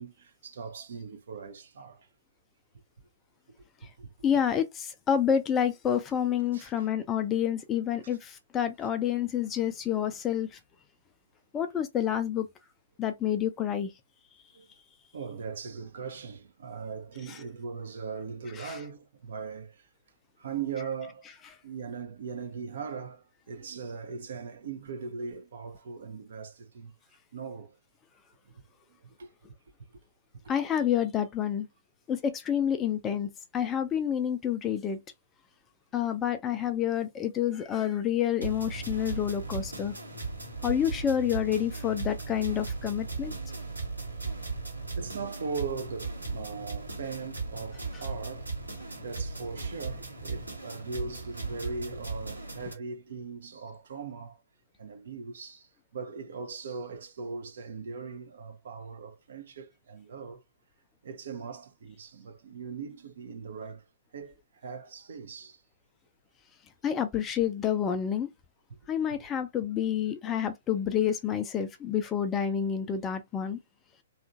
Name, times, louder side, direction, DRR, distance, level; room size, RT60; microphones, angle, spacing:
voice 1, 0.0-2.1 3.6-4.1 6.5-6.9 14.5-14.7 15.1-19.9 20.4-21.3 21.6-26.9 27.3-27.8 28.4-28.6 28.9-29.3 29.9-30.0 30.4-30.5 40.5-40.6 44.1-44.2 45.0-48.5 49.0-54.4 54.8-60.4 61.0-63.9 64.1-65.6 68.7-68.8, right 5 dB, 55° right, 0.6 m, -40 dB
voice 2, 4.2-10.6 11.5-12.5 13.0-13.9 17.3-17.4 18.6-18.8 30.5-31.7 32.1-35.0 35.9-39.9 40.6-43.3 66.8-68.3 68.9-73.6, left 9 dB, 20° left, 0.4 m, -28 dB
sound 1, 38.4-52.7, right 3 dB, 80° right, 1.0 m, -37 dB
2.8 x 2.4 x 2.5 m
figure-of-eight pair, 120°, 0 cm